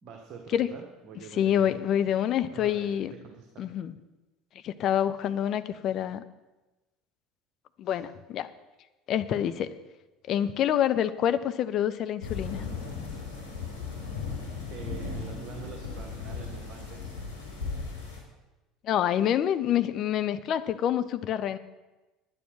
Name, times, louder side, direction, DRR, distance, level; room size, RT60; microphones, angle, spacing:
voice 1, 0.0-1.8 2.5-3.7 7.8-8.0 14.7-17.1, right 6 dB, 45° right, 1 dB, 1.6 m, -45 dB
voice 2, 1.3-3.1 3.6-3.9 4.6-6.2 7.8-8.5 9.1-9.7 10.3-12.6 18.8-21.6, left 10 dB, 45° left, 11 dB, 0.7 m, -27 dB
sound 1, 12.2-18.2, left 4 dB, 85° left, 3.2 m, -36 dB
10.5 x 9.5 x 6.2 m, 1.1 s
figure-of-eight pair, 65°, 0 cm